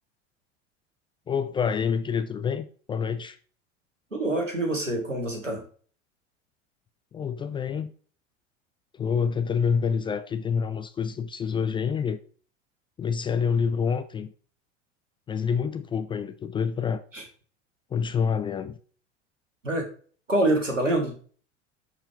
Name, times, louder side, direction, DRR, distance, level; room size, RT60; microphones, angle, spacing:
voice 1, 1.3-3.4 7.1-7.9 8.9-12.2 13.0-14.3 15.3-17.0 17.9-18.8, left 6 dB, 15° left, 0.3 m, -27 dB
voice 2, 4.1-5.6 17.1-17.2 19.6-19.9 20.3-21.1, right 1 dB, 85° right, 1.8 m, -25 dB
11.0 x 4.5 x 3.3 m
figure-of-eight pair, 75°, 37 cm